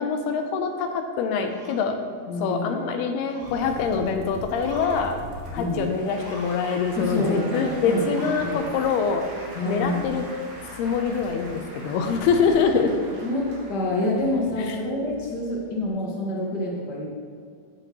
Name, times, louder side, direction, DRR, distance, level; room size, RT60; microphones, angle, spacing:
voice 1, 0.0-2.0 2.4-5.2 5.5-10.2 10.8-12.9 14.7-14.8, left 5 dB, 90° left, 5 dB, 2.8 m, -24 dB
Motor vehicle (road) / Siren, 1.5-1.9 3.3-3.8 4.6-5.1 6.2-6.8 8.1-8.6, equal, 30° right, 2.8 m, -41 dB
voice 2, 2.3-2.7 5.5-5.8 7.0-8.6 9.5-10.1 13.2-17.2, left 1 dB, 50° left, -3 dB, 1.3 m, -27 dB
sound 1, 3.4-12.7, left 1 dB, 65° left, 3.4 m, -43 dB
Applause, 5.3-15.9, right 1 dB, 85° right, 4.3 m, -43 dB
15.0 x 7.1 x 3.0 m, 2.2 s
omnidirectional pair, 4.4 m